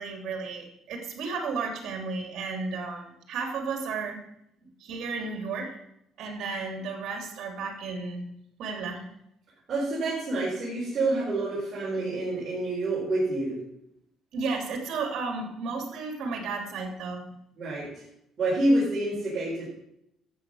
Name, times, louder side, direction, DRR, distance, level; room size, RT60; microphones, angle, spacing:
voice 1, 0.0-4.2 4.6-5.7 6.2-8.3 8.6-9.1 14.3-17.2, right 4 dB, 60° right, 3 dB, 2.9 m, -33 dB
voice 2, 9.7-13.6 17.6-18.0 18.4-19.7, right 2 dB, 35° right, -7 dB, 4.3 m, -27 dB
12.5 x 8.0 x 6.3 m, 0.79 s
cardioid pair, 160°, 0 cm